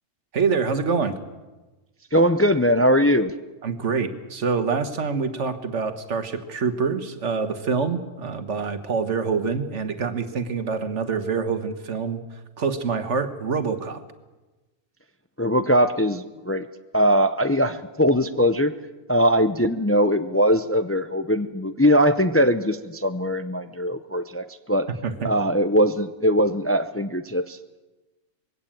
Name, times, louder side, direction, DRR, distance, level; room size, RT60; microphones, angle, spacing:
voice 1, 0.3-1.1 3.6-12.2 12.6-14.0 25.0-25.3, right 5 dB, 80° right, 9 dB, 1.7 m, -26 dB
voice 2, 2.1-3.3 15.4-16.7 16.9-18.7 19.1-24.9 25.2-27.6, equal, 15° left, 10 dB, 0.5 m, -21 dB
21.0 x 16.5 x 8.7 m, 1.2 s
omnidirectional pair, 1.2 m